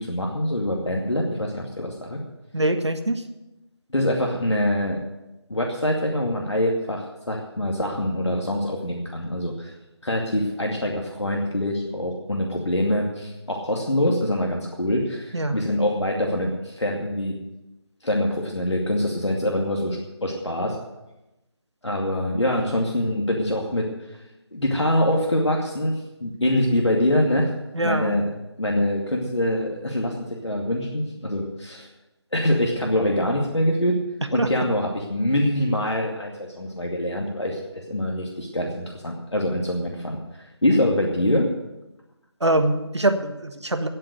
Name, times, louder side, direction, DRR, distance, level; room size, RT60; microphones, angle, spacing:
voice 1, 0.0-2.2 3.9-5.0 5.5-9.7 10.0-17.4 18.0-20.8 21.8-24.2 24.5-25.9 26.2-27.5 27.8-28.3 28.6-31.9 32.3-34.0 34.3-40.2 40.6-41.5, left 1 dB, 85° left, -1 dB, 2.4 m, -24 dB
voice 2, 2.5-3.2 15.3-15.6 27.7-28.2 34.4-34.5 42.4-43.9, right 1 dB, 80° right, 7 dB, 1.5 m, -23 dB
17.5 x 7.7 x 6.8 m, 0.99 s
figure-of-eight pair, 160°, 14 cm